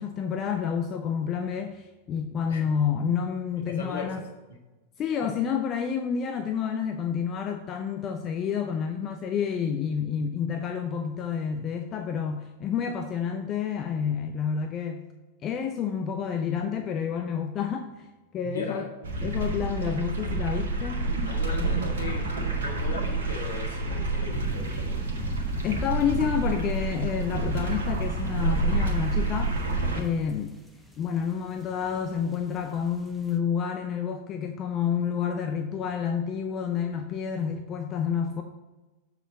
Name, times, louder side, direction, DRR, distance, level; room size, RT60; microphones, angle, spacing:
voice 1, 0.0-4.2 5.0-15.0 15.4-18.1 18.3-18.9 19.2-21.1 25.6-29.6 29.9-30.6 31.0-38.4, left 7 dB, 30° left, 5 dB, 0.6 m, -29 dB
voice 2, 3.6-4.2 4.5-4.6 5.2-5.3 18.4-18.9 21.2-25.0, left 5 dB, 65° left, 1 dB, 1.6 m, -38 dB
sound 1, 19.0-30.0, right 3 dB, 65° right, 1.2 m, -28 dB
sound 2, 24.3-33.4, left 1 dB, ahead, 1.0 m, -41 dB
7.2 x 5.7 x 3.8 m, 1.1 s
figure-of-eight pair, 90°, 0 cm